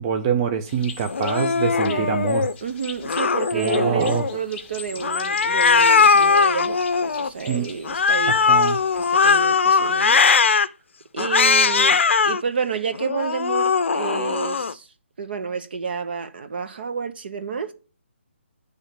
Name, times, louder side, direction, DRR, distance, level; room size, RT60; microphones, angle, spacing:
voice 1, 0.0-2.5 3.5-4.3 7.5-7.7 8.3-8.8, right 7 dB, 20° right, 0.4 m, -24 dB
sound 1, 0.7-9.4, left 6 dB, 15° left, 0.9 m, -40 dB
Cat, 1.1-2.5 3.0-4.4 5.0-7.3 7.8-10.7 11.2-12.4 12.9-14.7, left 5 dB, 65° left, 0.5 m, -19 dB
voice 2, 1.8-2.2 2.6-8.4 9.0-10.6 11.1-14.9 15.2-17.7, right 6 dB, 50° right, 0.9 m, -30 dB
9.7 x 3.3 x 6.6 m
hypercardioid pair, 160°, 7 cm